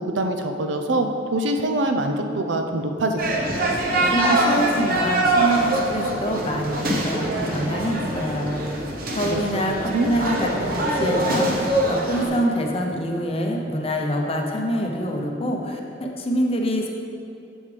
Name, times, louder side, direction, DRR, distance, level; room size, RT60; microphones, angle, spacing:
voice 1, 0.0-3.7 9.2-9.4 9.9-10.1, right 2 dB, 75° right, 5 dB, 0.6 m, -24 dB
sound 1, 3.2-12.3, right 1 dB, 55° right, 0.9 m, -23 dB
voice 2, 4.0-8.8 9.1-16.9, equal, 30° left, 1 dB, 0.7 m, -26 dB
7.2 x 7.2 x 3.3 m, 2.7 s
head